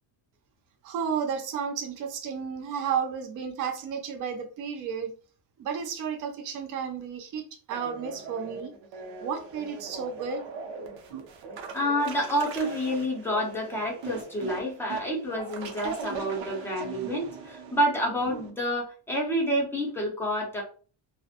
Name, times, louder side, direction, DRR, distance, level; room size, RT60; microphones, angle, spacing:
voice 1, 0.8-5.1 5.6-8.7 9.2-10.4, right 7 dB, 45° right, 5 dB, 0.5 m, -32 dB
sound 1, 7.7-18.5, right 5 dB, 85° right, 0.7 m, -40 dB
voice 2, 11.7-20.6, equal, 5° left, -2 dB, 0.5 m, -28 dB
2.8 x 2.1 x 2.4 m, 0.39 s
cardioid pair, 170°, 45 cm